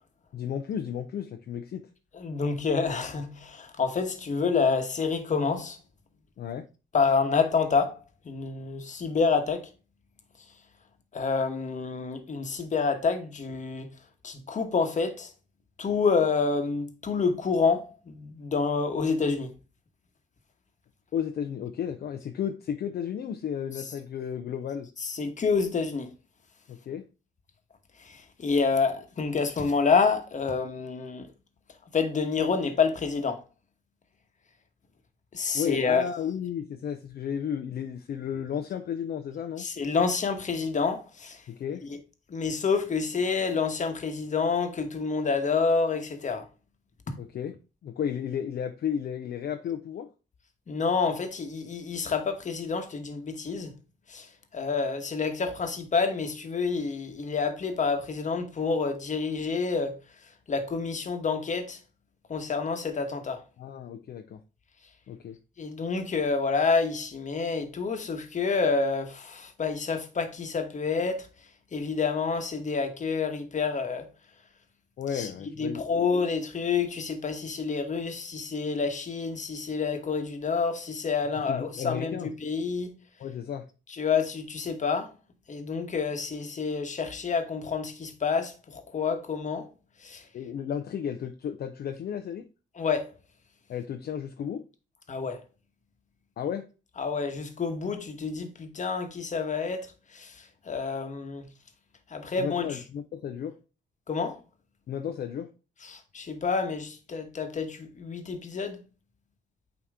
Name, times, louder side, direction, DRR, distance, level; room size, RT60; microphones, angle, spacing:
voice 1, 0.3-1.9 6.4-6.7 21.1-24.9 26.7-27.1 35.5-39.7 41.5-41.9 47.2-47.6 47.8-50.1 63.6-64.4 65.1-65.4 75.0-76.1 81.5-82.3 83.2-83.7 90.3-92.5 93.7-94.7 96.4-96.7 102.4-103.6 104.9-105.5, left 8 dB, 55° left, 0.6 m, -33 dB
voice 2, 2.1-5.8 6.9-9.7 11.1-13.9 14.2-15.3 15.8-19.5 23.8-23.9 25.0-26.1 28.0-31.3 31.9-33.4 35.3-36.0 39.6-41.4 41.8-42.0 42.3-46.5 50.7-53.7 54.1-60.0 60.5-61.8 62.3-63.4 65.6-71.3 71.7-74.1 75.1-75.3 75.6-83.0 83.9-85.1 85.5-89.7 90.0-90.2 92.8-93.1 95.1-95.4 97.0-101.5 102.1-102.8 104.1-104.4 105.8-108.8, left 5 dB, 40° left, 1.2 m, -28 dB
8.7 x 3.0 x 3.5 m
cardioid pair, 90°, 20 cm